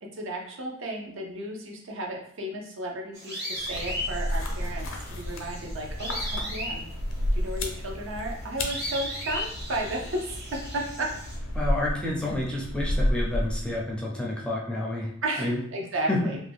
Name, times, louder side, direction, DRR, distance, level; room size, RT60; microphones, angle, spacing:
voice 1, 0.0-6.9 7.3-11.1 15.2-16.4, right 1 dB, 65° right, 0 dB, 0.6 m, -34 dB
sound 1, 3.1-11.4, equal, 50° right, 1.2 m, -37 dB
sound 2, 3.5-13.9, equal, 65° left, 0.5 m, -32 dB
voice 2, 11.5-15.1 15.4-15.6 16.1-16.2, left 1 dB, 5° left, -4 dB, 0.4 m, -29 dB
2.6 x 2.2 x 3.3 m, 0.66 s
head